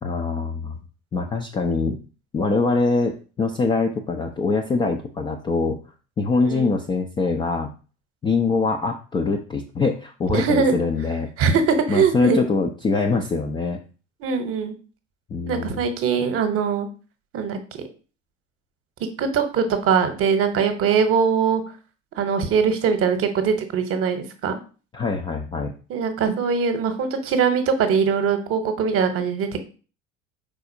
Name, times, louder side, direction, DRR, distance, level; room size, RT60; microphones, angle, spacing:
voice 1, 0.0-0.8 1.1-2.0 2.3-5.8 6.2-7.7 8.2-11.3 11.9-13.8 15.3-15.9 24.9-25.7, left 3 dB, 15° left, 2 dB, 0.3 m, -23 dB
voice 2, 6.4-6.8 10.3-10.7 11.4-12.4 14.2-14.7 15.5-16.9 17.3-17.6 19.2-21.6 22.1-24.6 25.9-29.6, right 6 dB, 35° right, 8 dB, 0.9 m, -21 dB
4.9 x 4.0 x 2.6 m, 0.36 s
figure-of-eight pair, 70°, 38 cm